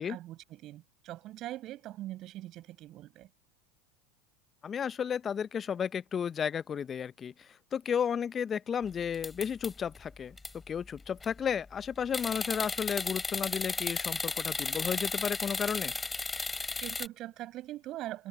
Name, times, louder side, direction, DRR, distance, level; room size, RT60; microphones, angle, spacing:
voice 1, 0.0-3.3 16.8-18.3, right 15 dB, 50° right, 6.3 m, -42 dB
voice 2, 4.6-10.4 10.7-15.9, left 7 dB, 30° left, 0.7 m, -33 dB
sound 1, 9.1-10.0 10.4-10.5 11.0-11.4 12.1-17.1, left 3 dB, 15° left, 3.2 m, -34 dB
hypercardioid pair, 95°, 0 cm